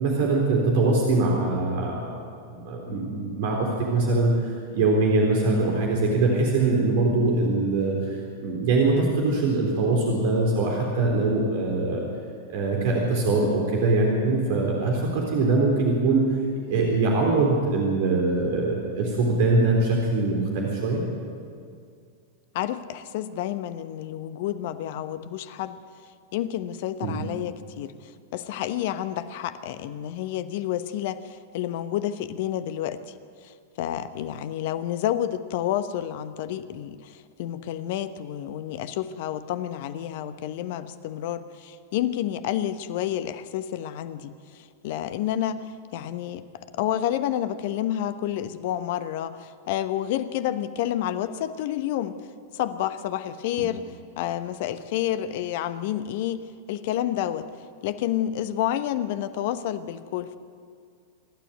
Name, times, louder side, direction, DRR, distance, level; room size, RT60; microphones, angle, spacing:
voice 1, 0.0-2.2 2.5-12.0 12.5-16.2 16.7-21.0 27.0-27.2, right 3 dB, 55° right, -1 dB, 3.8 m, -23 dB
voice 2, 22.5-25.8 26.3-33.1 33.4-52.2 52.5-57.5 57.8-60.4, left 11 dB, 55° left, 12 dB, 1.1 m, -29 dB
26.5 x 12.5 x 9.3 m, 2.3 s
figure-of-eight pair, 90°, 0 cm